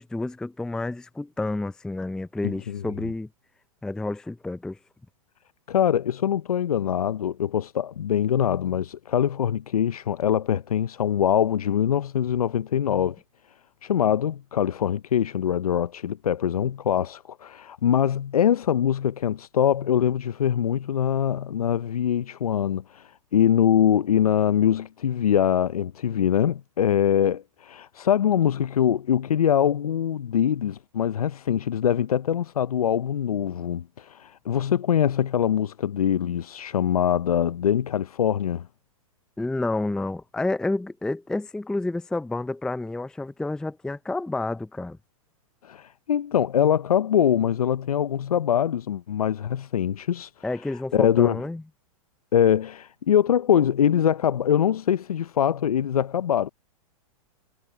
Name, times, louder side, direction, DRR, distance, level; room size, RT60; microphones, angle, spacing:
voice 1, 0.0-3.3 3.8-4.8 39.4-45.0 50.4-51.6, left 2 dB, 5° left, 0.5 m, -29 dB
voice 2, 2.4-2.8 5.7-13.2 13.8-38.6 45.6-50.3 50.9-51.4 52.3-56.5, left 9 dB, 85° left, 0.6 m, -23 dB
hypercardioid pair, 115°, 19 cm